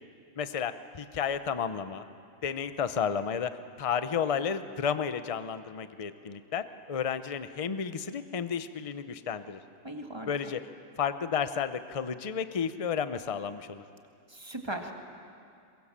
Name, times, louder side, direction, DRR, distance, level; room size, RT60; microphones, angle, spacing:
voice 1, 0.4-2.0 2.4-9.6 10.3-10.7 11.0-13.8, left 7 dB, 30° left, 11 dB, 0.7 m, -32 dB
voice 2, 9.8-10.3 14.3-14.9, right 1 dB, 20° right, 3 dB, 1.9 m, -38 dB
22.5 x 22.5 x 7.4 m, 2.5 s
omnidirectional pair, 1.4 m